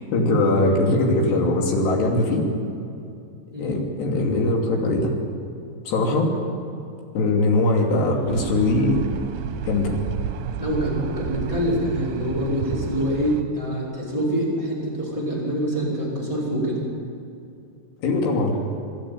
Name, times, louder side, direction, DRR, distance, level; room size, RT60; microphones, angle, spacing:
voice 1, 0.1-2.5 3.6-5.2 5.9-6.3 7.1-9.0 9.6-9.9 18.0-18.6, left 2 dB, 80° left, 0 dB, 4.9 m, -21 dB
sound 1, 8.3-13.4, right 7 dB, 90° right, 3.2 m, -31 dB
voice 2, 10.6-16.8, equal, 10° left, -5 dB, 5.1 m, -25 dB
27.0 x 12.0 x 9.2 m, 2.6 s
omnidirectional pair, 4.8 m